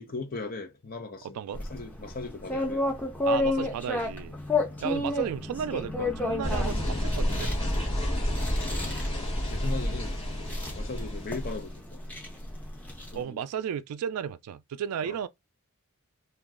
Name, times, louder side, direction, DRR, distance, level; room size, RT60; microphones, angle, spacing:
voice 1, 0.0-2.8 4.6-4.8 8.3-8.7 9.5-10.3 10.7-12.0 13.1-13.4 15.0-15.2, left 3 dB, 40° left, 0.7 m, -38 dB
sound 1, 1.5-13.2, left 2 dB, 5° left, 0.7 m, -32 dB
voice 2, 3.2-4.3 4.8-7.5 13.1-15.3, right 8 dB, 90° right, 0.3 m, -33 dB
sound 2, 6.4-11.7, equal, 25° left, 1.4 m, -30 dB
3.0 x 2.3 x 3.6 m
head